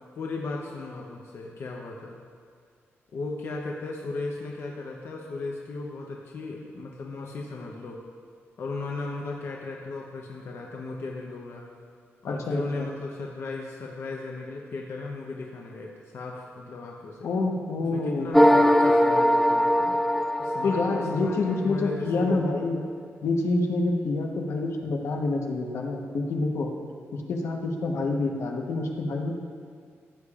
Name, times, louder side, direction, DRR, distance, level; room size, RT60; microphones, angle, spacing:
voice 1, 0.2-2.2 3.1-8.0 8.6-11.6 12.2-17.3 17.9-20.0 20.4-20.8 21.1-22.4, left 3 dB, 60° left, -1 dB, 0.8 m, -36 dB
voice 2, 12.2-12.9 17.2-18.5 20.6-22.8 23.2-26.7 27.1-29.3, left 3 dB, 80° left, 1 dB, 1.1 m, -27 dB
sound 1, 18.3-21.7, equal, 5° left, 0.4 m, -21 dB
14.5 x 8.4 x 2.4 m, 2.1 s
wide cardioid pair, 150°, 5 cm